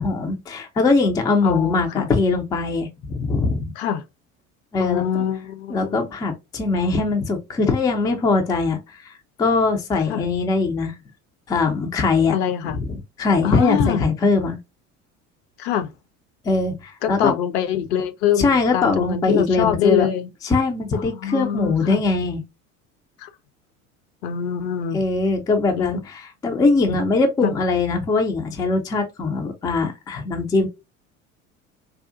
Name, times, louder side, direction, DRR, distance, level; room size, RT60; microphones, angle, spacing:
voice 1, 0.0-3.7 4.7-5.0 5.7-11.0 11.5-12.3 12.7-12.9 13.2-14.6 16.4-17.3 18.4-20.1 20.4-22.4 24.9-30.7, left 3 dB, 10° left, 0.4 m, -21 dB
voice 2, 1.4-2.1 3.8-4.0 4.8-6.0 10.1-10.2 12.3-12.8 13.4-14.0 15.6-15.9 17.0-20.3 20.9-22.0 23.2-23.3 24.2-25.0 25.7-26.0 27.4-27.5, left 9 dB, 50° left, 0.6 m, -24 dB
3.6 x 2.3 x 2.4 m
figure-of-eight pair, 65°, 43 cm